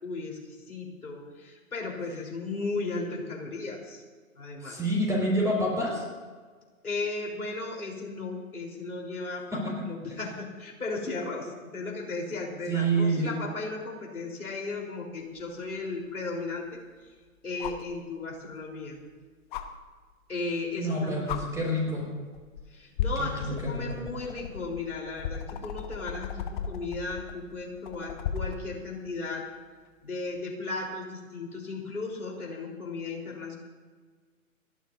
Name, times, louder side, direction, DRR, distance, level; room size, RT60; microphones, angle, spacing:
voice 1, 0.0-4.0 4.4-4.8 6.8-16.8 17.4-19.0 20.3-21.5 22.7-29.5 30.0-33.6, left 3 dB, 80° left, -1 dB, 4.1 m, -35 dB
voice 2, 4.6-6.0 12.7-13.3 20.8-22.1 23.2-23.8, right 1 dB, 5° right, -2 dB, 5.1 m, -27 dB
sound 1, 15.4-15.5 17.6-17.9 19.5-19.6 20.8-20.9 21.3-21.4 22.3-22.6 23.0-28.6 30.3-30.4, left 8 dB, 35° left, 1.2 m, -35 dB
30.0 x 12.0 x 2.7 m, 1.5 s
figure-of-eight pair, 125°, 43 cm